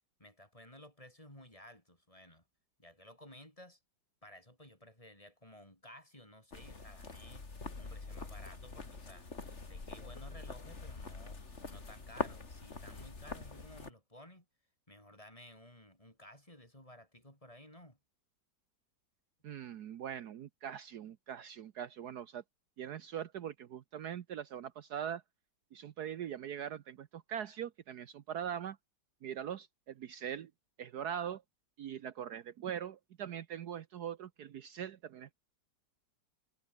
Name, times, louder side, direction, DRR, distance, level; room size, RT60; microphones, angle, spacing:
voice 1, 0.2-2.4 2.8-3.8 4.2-7.5 7.8-9.3 9.6-11.4 11.7-14.5 14.9-18.0, left 1 dB, 20° left, 6.2 m, -55 dB
sound 1, 6.5-13.9, left 3 dB, 40° left, 2.9 m, -44 dB
voice 2, 19.4-22.4 22.8-25.2 25.7-28.8 29.2-30.5 30.8-31.4 31.8-35.3, right 9 dB, 65° right, 1.4 m, -42 dB
omnidirectional pair, 1.9 m